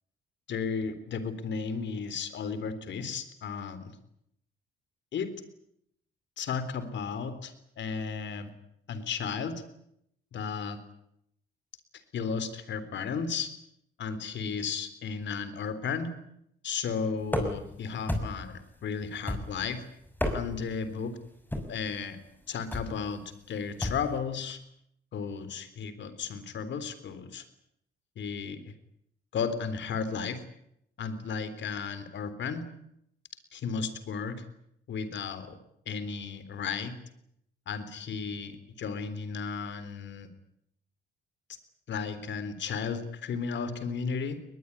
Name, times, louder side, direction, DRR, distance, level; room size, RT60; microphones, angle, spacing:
voice 1, 0.5-3.9 5.1-5.3 6.4-8.5 8.9-9.5 10.3-10.8 12.1-13.5 14.0-16.1 16.6-19.8 20.3-21.1 21.7-22.2 22.5-23.2 23.5-24.6 25.1-27.4 28.2-28.6 29.3-30.4 31.0-32.6 33.5-34.4 34.9-35.6 35.9-36.9 37.7-40.3 41.9-44.4, left 5 dB, 65° left, 13 dB, 3.8 m, -34 dB
sound 1, 17.3-17.7 18.1-18.6 19.3-19.7 20.1-20.7 21.5-21.8 22.7-23.0 23.8-24.1, left 1 dB, 10° left, 6.1 m, -32 dB
21.5 x 21.0 x 9.9 m, 0.74 s
cardioid pair, 90°, 20 cm